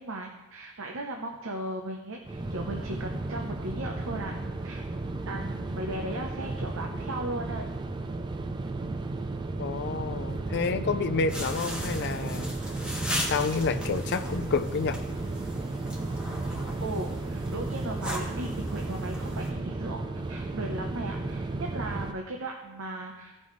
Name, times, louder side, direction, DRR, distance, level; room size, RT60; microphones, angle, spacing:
voice 1, 0.0-4.8 5.3-7.6 16.8-23.4, right 2 dB, 60° right, 1 dB, 0.8 m, -37 dB
sound 1, 2.3-22.1, right 2 dB, 20° right, 0.4 m, -34 dB
voice 2, 9.6-12.5 13.3-15.0, left 4 dB, 50° left, 8 dB, 0.5 m, -29 dB
sound 2, 11.3-19.5, equal, 5° right, 1.5 m, -38 dB
16.0 x 5.4 x 3.2 m, 1.1 s
head